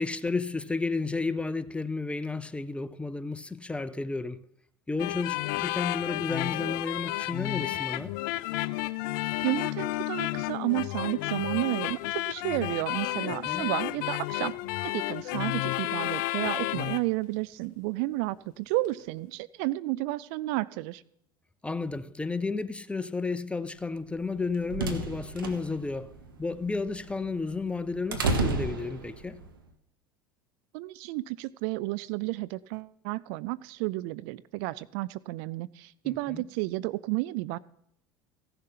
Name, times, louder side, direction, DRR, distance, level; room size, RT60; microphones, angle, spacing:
voice 1, 0.0-4.4 4.9-8.1 13.5-13.7 21.6-26.1 26.4-29.4 36.0-36.4, left 3 dB, 10° left, 0.6 m, -32 dB
sound 1, 5.0-17.1, left 18 dB, 65° left, 0.4 m, -31 dB
voice 2, 9.4-12.0 12.2-14.5 14.8-21.0 30.7-37.6, right 19 dB, 65° right, 0.4 m, -32 dB
sound 2, 24.2-29.5, right 3 dB, 90° right, 1.1 m, -32 dB
16.0 x 6.7 x 5.8 m
hypercardioid pair, 75°, 11 cm